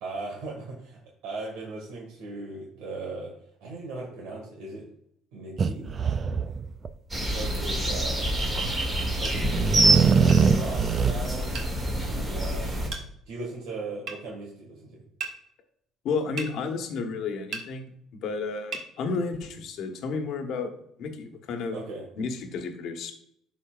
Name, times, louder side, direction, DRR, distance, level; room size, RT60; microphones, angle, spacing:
voice 1, 0.0-3.3 3.6-4.9 5.3-6.0 7.2-8.3 9.1-11.6 12.1-12.8 13.3-15.0 21.7-22.1, right 3 dB, 85° right, -2 dB, 1.8 m, -38 dB
sound 1, 5.6-6.9 9.1-11.1, right 6 dB, 35° right, 0.4 m, -22 dB
sound 2, 7.1-12.9, right 1 dB, 20° right, 2.4 m, -26 dB
sound 3, 9.2-9.4 10.3-10.5 11.5-11.7 12.9-13.1 14.1-14.2 15.2-15.4 16.4-16.5 17.5-17.7 18.7-18.9, right 5 dB, 60° right, 1.3 m, -35 dB
voice 2, 16.0-17.9 18.2-20.7 21.0-21.8 22.2-23.1, left 4 dB, 65° left, 5 dB, 1.2 m, -31 dB
11.5 x 4.2 x 2.4 m, 0.72 s
cardioid pair, 115°, 0 cm